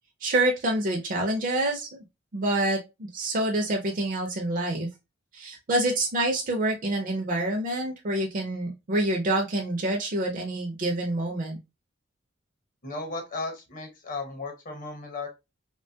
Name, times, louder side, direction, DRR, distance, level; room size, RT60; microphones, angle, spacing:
voice 1, 0.2-1.9 2.3-4.9 5.3-11.6, right 1 dB, 45° right, 0.5 m, -27 dB
voice 2, 12.8-15.3, left 3 dB, 45° left, 0.9 m, -35 dB
3.0 x 2.2 x 2.6 m
head